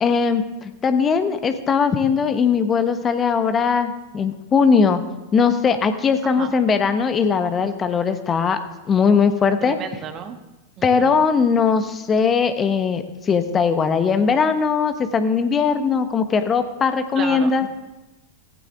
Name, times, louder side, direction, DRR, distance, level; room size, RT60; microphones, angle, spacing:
voice 1, 0.0-5.0 5.3-8.6 8.9-9.8 10.8-17.7, left 5 dB, 20° left, 9 dB, 1.2 m, -19 dB
voice 2, 9.6-10.4 10.8-11.2 17.1-17.7, right 8 dB, 30° right, 7 dB, 1.4 m, -33 dB
16.0 x 15.0 x 3.6 m, 1.0 s
figure-of-eight pair, 90°, 0 cm